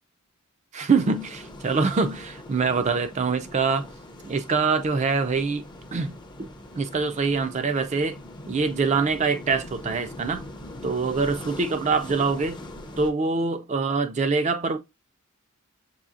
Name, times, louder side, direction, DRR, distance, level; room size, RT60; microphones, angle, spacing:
voice 1, 0.7-3.9 4.2-5.6 5.9-6.5 6.8-8.2 8.5-10.5 10.8-12.6 13.0-14.8, right 4 dB, 30° right, 0.4 m, -24 dB
sound 1, 1.0-13.1, left 1 dB, 20° left, 0.5 m, -42 dB
6.8 x 2.8 x 2.4 m
head